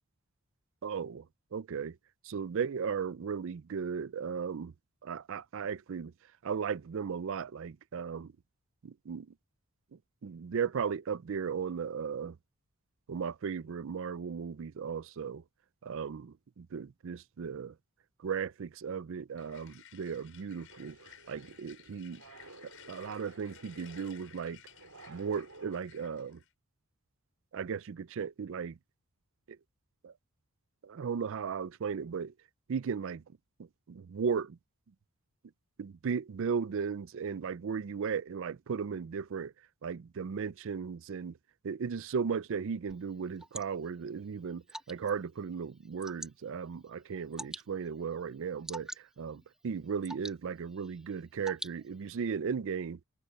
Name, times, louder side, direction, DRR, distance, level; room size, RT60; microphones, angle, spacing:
voice 1, 0.8-1.2 1.5-2.0 2.2-4.7 5.0-6.1 6.4-8.3 8.8-9.3 10.2-12.4 13.1-15.4 15.8-17.7 18.2-22.2 22.6-24.6 25.1-26.4 27.5-28.8 29.5-29.6 30.0-30.1 30.8-32.3 32.7-33.2 33.9-34.6 35.8-39.5 39.8-41.3 41.6-44.6 44.9-53.0, right 6 dB, 60° right, 0.4 m, -36 dB
sound 1, 19.4-26.5, left 10 dB, 65° left, 6.7 m, -57 dB
sound 2, 20.7-25.8, right 3 dB, 80° right, 4.4 m, -54 dB
Water / Drip, 42.9-52.3, right 1 dB, 5° right, 2.2 m, -49 dB
head